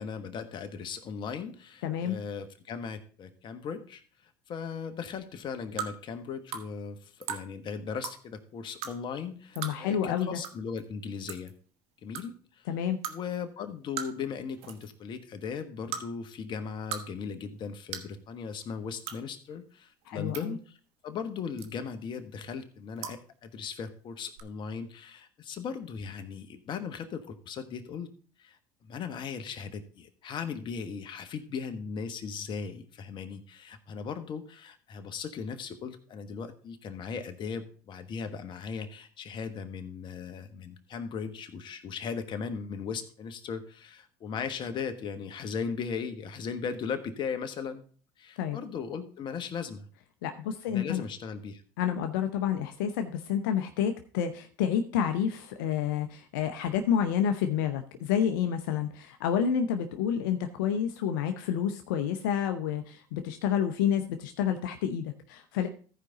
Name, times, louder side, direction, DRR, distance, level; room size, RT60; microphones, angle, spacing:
voice 1, 0.0-11.5 12.0-12.7 13.1-20.8 21.0-28.1 28.4-47.8 48.2-49.9 50.7-51.6, left 6 dB, 45° left, 8 dB, 1.3 m, -38 dB
voice 2, 1.8-2.2 9.6-10.4 12.7-13.0 20.1-20.6 48.4-48.6 50.2-51.0 51.8-65.7, left 8 dB, 80° left, 6 dB, 0.7 m, -29 dB
sound 1, 5.8-5.9 6.5-6.6 7.2-7.4 8.0-8.2 8.8-8.9 9.6-9.7 10.4-10.5 10.8-10.9 11.3-11.5 12.1-12.2 13.0-13.2 14.0-14.3 14.6-14.9 15.9-16.0 16.7-17.0 17.3-17.4 17.9-18.1 19.0-19.2 20.0-20.4 21.6-21.9 23.0-23.2 24.3-24.4, right 8 dB, 65° right, 1.2 m, -36 dB
14.5 x 5.0 x 4.0 m, 0.43 s
hypercardioid pair, 80°, 11 cm